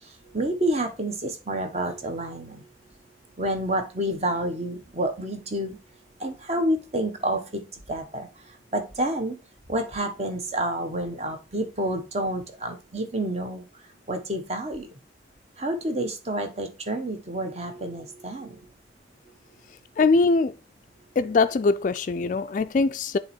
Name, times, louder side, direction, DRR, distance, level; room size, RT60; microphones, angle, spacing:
voice 1, 0.0-2.7 3.4-5.8 6.2-9.4 9.7-13.6 14.1-14.9 15.6-18.6, right 1 dB, 35° right, 1.0 m, -29 dB
voice 2, 20.0-20.6 21.2-23.2, left 3 dB, 45° left, 0.3 m, -22 dB
7.5 x 3.0 x 4.3 m
head